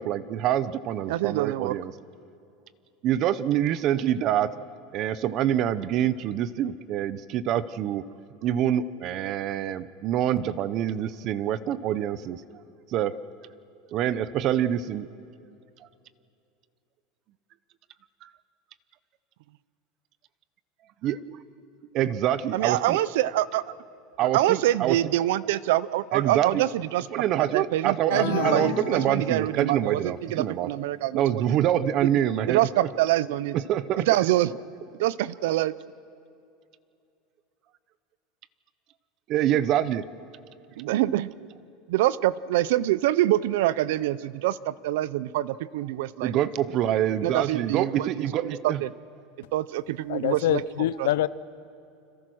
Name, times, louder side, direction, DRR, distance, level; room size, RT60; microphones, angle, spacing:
voice 1, 0.0-1.9 3.0-4.6 4.9-8.1 8.4-12.4 12.9-13.2 13.9-15.1 18.2-18.3 21.0-21.4 21.9-23.0 24.2-25.0 26.1-26.6 27.1-30.7 31.1-32.6 33.7-34.1 39.3-40.1 46.2-48.8, right 11 dB, 35° right, 16 dB, 0.7 m, -26 dB
voice 2, 1.1-1.8 22.5-23.6 24.2-27.1 27.4-31.4 32.0-32.1 32.5-33.6 34.0-34.5 35.0-35.7 40.8-41.5 41.9-46.3 47.2-48.9 49.5-51.1, right 14 dB, 70° right, 19 dB, 0.6 m, -25 dB
sound 1, 28.1-29.9, left 10 dB, 65° left, 1.7 m, -32 dB
voice 3, 50.1-51.3, left 13 dB, 85° left, 17 dB, 0.7 m, -25 dB
29.5 x 26.5 x 6.3 m, 2.6 s
supercardioid pair, 175°, 0 cm